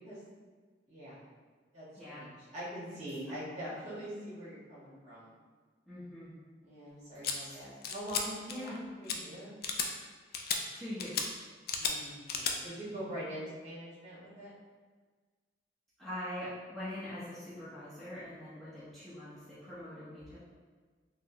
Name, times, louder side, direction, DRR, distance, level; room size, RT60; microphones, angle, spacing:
voice 1, 0.9-1.2 1.7-5.3 6.6-9.6 11.8-14.5, equal, 40° right, -10 dB, 1.4 m, -43 dB
voice 2, 5.9-6.3 7.4-7.6 8.5-8.8 10.7-11.3 12.8-13.2 16.0-20.4, left 1 dB, ahead, -14 dB, 0.8 m, -43 dB
sound 1, 7.2-7.3 7.8-8.2 8.5-8.8 9.1-9.2 9.6-9.9 10.3-10.6 11.0-11.3 11.7-11.9 12.3-12.5, left 6 dB, 55° left, 0.3 m, -33 dB
4.2 x 2.0 x 2.8 m, 1.4 s
head